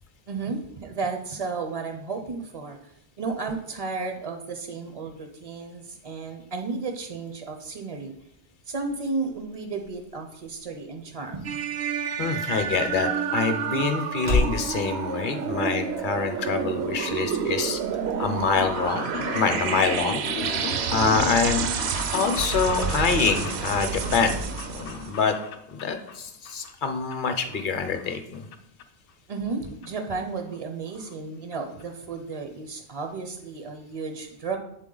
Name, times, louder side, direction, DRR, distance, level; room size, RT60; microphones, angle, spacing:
voice 1, 0.3-8.1 8.7-11.6 13.8-13.9 29.3-34.6, right 4 dB, 45° right, 5 dB, 0.5 m, -33 dB
sound 1, 8.4-14.6, left 2 dB, 85° right, 2.2 m, -34 dB
sound 2, 11.4-25.2, right 7 dB, 70° right, 0.8 m, -29 dB
voice 2, 12.2-17.8 18.2-19.0 19.3-20.2 20.9-21.6 22.1-24.4 24.7-25.4 25.7-28.4, left 5 dB, 50° left, 7 dB, 0.7 m, -25 dB
sound 3, 18.4-26.2 26.4-27.1 27.5-28.5 28.8-28.9 29.8-29.9 30.1-30.2 30.5-30.6 30.9-31.1 31.5-31.6 31.8-31.9, left 5 dB, 85° left, 0.9 m, -36 dB
8.2 x 3.9 x 3.8 m, 0.77 s
omnidirectional pair, 1.2 m